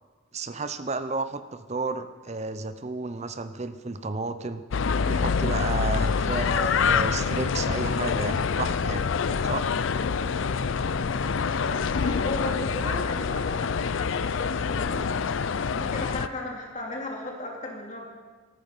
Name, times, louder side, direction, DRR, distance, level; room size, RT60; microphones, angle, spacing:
voice 1, 0.3-4.6 5.1-6.5 6.8-9.0 9.4-9.7, right 3 dB, 30° right, 11 dB, 0.6 m, -32 dB
sound 1, 4.7-16.3, left 5 dB, 65° left, 0.5 m, -26 dB
voice 2, 6.5-6.8 10.8-11.2 11.7-15.0 15.6-18.1, left 2 dB, 35° left, -1 dB, 2.6 m, -36 dB
14.0 x 13.5 x 5.6 m, 1.4 s
head